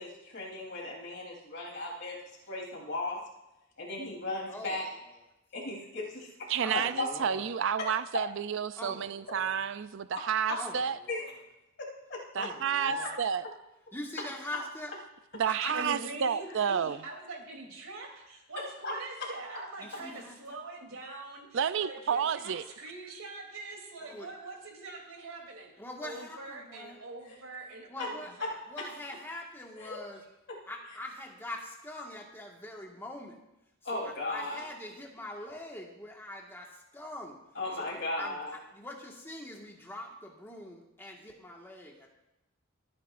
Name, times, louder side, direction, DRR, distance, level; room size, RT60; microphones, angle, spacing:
voice 1, 0.0-2.2 2.5-3.2 3.8-4.9 5.5-6.3 6.7-7.1 7.8-7.9 10.5-10.6 11.1-11.2 11.8-12.5 12.8-13.1 18.8-19.0 27.2-27.3 28.0-28.1 29.8-30.0 33.8-34.6 37.6-38.5, left 2 dB, 55° left, -3 dB, 3.6 m, -36 dB
voice 2, 4.5-5.1 6.6-7.5 8.8-9.6 10.6-11.3 12.3-13.2 13.9-14.9 15.4-16.0 19.8-20.4 24.0-24.3 25.8-27.0 27.9-28.3 28.7-30.2 30.7-33.4 33.9-37.4 37.8-42.1, left 1 dB, 10° left, -1 dB, 1.7 m, -43 dB
voice 3, 6.5-11.0 12.3-13.4 15.3-17.0 21.5-22.6, right 7 dB, 60° right, 13 dB, 0.4 m, -30 dB
voice 4, 15.7-25.7 26.0-28.5, right 2 dB, 85° right, 0 dB, 3.2 m, -44 dB
27.0 x 9.5 x 2.6 m, 0.93 s
head